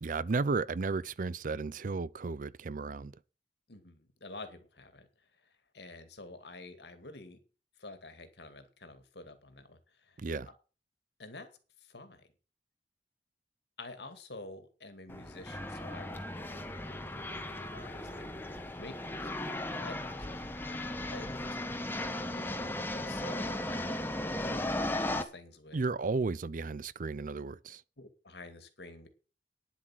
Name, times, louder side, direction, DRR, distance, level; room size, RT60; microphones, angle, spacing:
voice 1, 0.0-3.1 10.2-10.5 25.7-27.8, right 4 dB, 50° right, 0.5 m, -33 dB
voice 2, 3.7-7.4 7.8-10.2 11.2-11.5 11.8-12.2 13.8-23.9 24.4-25.8 28.0-29.1, left 2 dB, 70° left, 2.2 m, -50 dB
sound 1, 15.1-25.2, left 1 dB, 10° left, 1.2 m, -36 dB
10.0 x 7.8 x 7.4 m
head